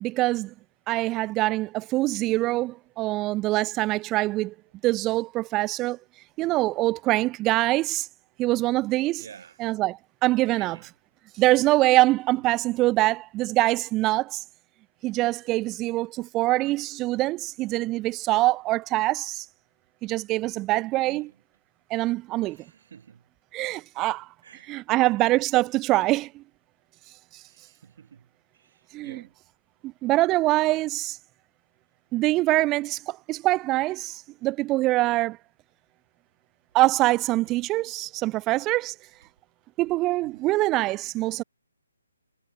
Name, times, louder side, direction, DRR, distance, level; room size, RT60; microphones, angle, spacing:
voice 1, 0.0-0.5 0.9-4.5 4.8-6.0 6.4-8.1 8.4-9.2 9.6-10.8 11.4-14.4 15.0-19.5 20.0-21.3 21.9-22.6 23.5-24.3 24.7-26.4 28.9-29.2 29.8-31.2 32.1-35.4 36.7-39.0 39.8-41.4, right 18 dB, 20° right, 0.3 m, -24 dB
voice 2, 9.2-9.6 10.4-10.9 12.3-12.6 21.0-21.4 22.4-23.2 24.4-25.2 27.4-28.3 28.5-29.3 40.2-40.6, right 7 dB, 50° right, 6.0 m, -50 dB
figure-of-eight pair, 145°, 0 cm